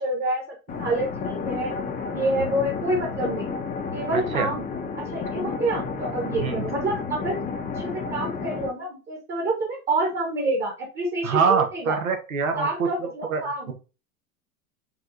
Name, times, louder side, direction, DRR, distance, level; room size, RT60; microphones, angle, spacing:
voice 1, 0.0-1.7 2.1-3.5 3.9-4.6 5.0-7.4 7.7-12.0 12.5-13.7, right 2 dB, 25° right, 0 dB, 1.3 m, -27 dB
sound 1, 0.7-8.7, left 5 dB, 20° left, 0.8 m, -31 dB
voice 2, 4.1-4.5 6.3-6.6 11.2-13.4 13.7-13.8, right 5 dB, 70° right, 5 dB, 1.1 m, -25 dB
4.6 x 3.1 x 2.6 m, 0.32 s
figure-of-eight pair, 90°, 42 cm